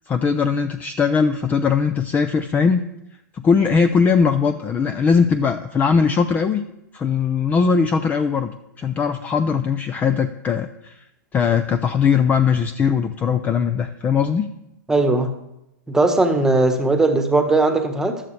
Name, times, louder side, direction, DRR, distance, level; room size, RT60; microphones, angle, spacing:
voice 1, 0.1-2.8 3.3-6.6 6.9-11.0 11.3-14.5, left 6 dB, 15° left, 10 dB, 0.6 m, -20 dB
voice 2, 14.9-15.3 15.9-18.2, right 2 dB, 5° right, 6 dB, 1.3 m, -18 dB
15.0 x 12.5 x 3.3 m, 0.87 s
hypercardioid pair, 145°, 10 cm